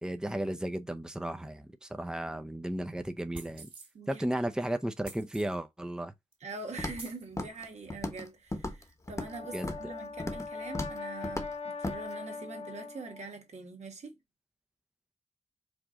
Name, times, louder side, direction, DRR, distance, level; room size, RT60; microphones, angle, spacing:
voice 1, 0.0-3.7 4.1-6.1 9.5-9.7, right 1 dB, 5° right, 0.6 m, -34 dB
sound 1, 3.3-3.9 5.0-5.6 6.3-6.4 6.9-7.3, right 3 dB, 45° right, 2.0 m, -47 dB
voice 2, 6.4-14.1, right 3 dB, 75° right, 1.3 m, -44 dB
Walk footsteps, 6.8-7.1 7.4-7.7 7.9-8.3 8.5-9.4 9.6-9.9 10.2-10.5 10.7-11.0 11.2-11.5 11.8-12.0, left 2 dB, 25° left, 1.2 m, -36 dB
Brass instrument, 9.1-13.3, left 4 dB, 65° left, 1.0 m, -41 dB
5.0 x 2.5 x 3.6 m
cardioid pair, 45°, 12 cm